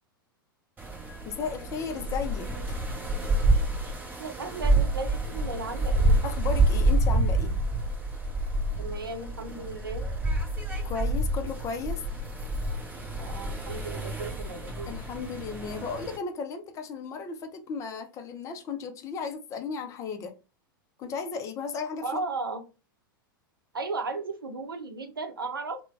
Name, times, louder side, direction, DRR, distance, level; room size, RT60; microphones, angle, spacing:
sound 1, 0.8-16.2, right 2 dB, 15° right, 0.9 m, -28 dB
voice 1, 1.3-2.5 6.2-7.6 10.8-12.0 14.9-20.3 21.0-22.2, left 5 dB, 25° left, 0.5 m, -35 dB
voice 2, 4.2-6.2 8.8-10.0 13.2-14.9 22.0-22.6 23.7-25.8, right 3 dB, 75° right, 0.6 m, -35 dB
3.1 x 2.1 x 2.5 m
figure-of-eight pair, 95°, 12 cm